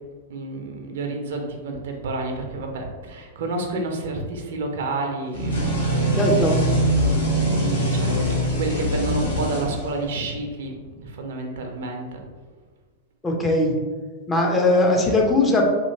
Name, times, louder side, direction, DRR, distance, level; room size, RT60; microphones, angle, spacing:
voice 1, 0.3-6.2 7.3-8.1 8.4-12.2, right 2 dB, 65° right, 3 dB, 0.5 m, -30 dB
sound 1, 5.3-10.2, right 1 dB, 80° left, 1.0 m, -23 dB
voice 2, 6.2-6.6 13.2-13.7 14.3-15.6, left 2 dB, 15° left, 0 dB, 0.6 m, -19 dB
2.8 x 2.7 x 2.7 m, 1.4 s
figure-of-eight pair, 95°, 0 cm